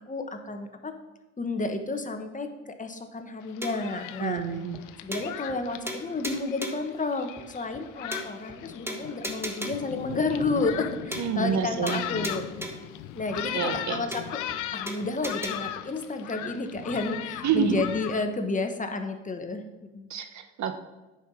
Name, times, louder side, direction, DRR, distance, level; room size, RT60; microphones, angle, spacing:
voice 1, 0.1-0.9 1.4-4.4 5.0-12.5 13.1-14.5 14.7-19.6 19.9-20.1, left 3 dB, 25° left, 6 dB, 1.1 m, -31 dB
Thunderstorm, 3.4-18.2, left 11 dB, 90° left, 0.6 m, -38 dB
sound 1, 3.6-4.0 4.4-4.5 4.7-4.8 5.1-5.6 5.9-6.9 7.4-7.5 7.7-7.8 8.1-8.6 8.9-9.9 10.4-10.5 10.7-10.9 11.1-11.6 11.9-12.9 13.4-13.5 13.7-13.8 14.1-14.6 14.9-15.5, right 1 dB, 10° right, 1.4 m, -37 dB
voice 2, 4.2-4.8 11.2-12.0 13.5-14.0 17.4-17.8 20.1-20.7, right 7 dB, 65° right, 8 dB, 1.1 m, -28 dB
9.5 x 5.4 x 6.2 m, 1.1 s
cardioid pair, 90°, 30 cm